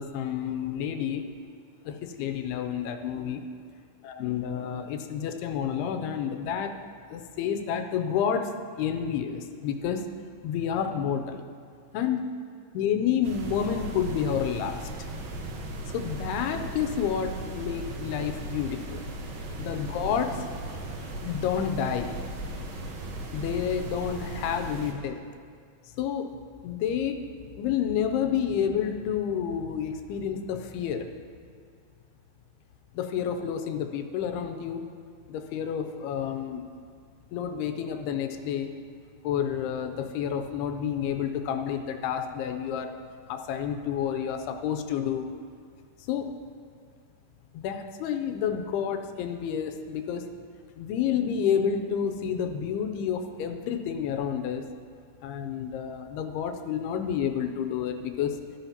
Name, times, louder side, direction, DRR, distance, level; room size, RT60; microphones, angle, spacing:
voice 1, 0.0-1.3 1.9-3.4 4.0-6.7 7.1-8.5 8.8-10.1 10.4-11.4 11.9-12.3 12.7-14.9 15.9-19.0 19.6-20.4 21.2-22.2 23.3-25.2 26.0-26.3 26.6-27.3 27.6-31.1 33.0-34.8 35.3-36.7 37.3-38.7 39.2-43.0 43.3-45.3 46.1-46.3 47.5-50.3 50.8-54.7 55.2-58.4, left 8 dB, 85° left, 6 dB, 2.6 m, -29 dB
sound 1, 13.2-24.9, right 1 dB, 70° right, 2.8 m, -37 dB
13.5 x 12.0 x 2.9 m, 2.2 s
omnidirectional pair, 4.5 m